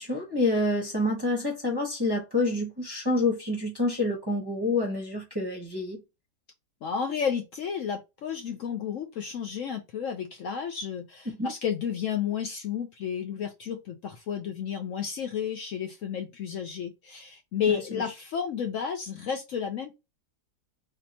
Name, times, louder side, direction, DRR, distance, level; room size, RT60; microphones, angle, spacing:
voice 1, 0.0-6.0 11.4-11.5, left 2 dB, 20° right, 0.8 m, -27 dB
voice 2, 6.8-20.0, left 7 dB, 65° left, 0.8 m, -32 dB
3.6 x 2.8 x 2.8 m
omnidirectional pair, 1.7 m